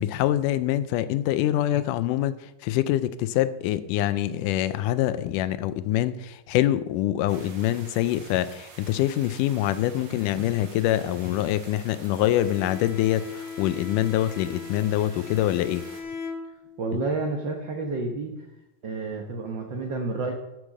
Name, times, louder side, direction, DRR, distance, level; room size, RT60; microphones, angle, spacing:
voice 1, 0.0-15.9, left 13 dB, 85° left, 14 dB, 2.1 m, -25 dB
sound 1, 7.3-16.0, right 4 dB, 50° right, 1.5 m, -48 dB
Bowed string instrument, 12.4-17.0, left 5 dB, 55° left, 2.1 m, -39 dB
voice 2, 16.8-18.3 18.8-20.3, right 3 dB, 85° right, 3 dB, 1.0 m, -30 dB
12.0 x 6.3 x 6.4 m, 0.95 s
omnidirectional pair, 3.7 m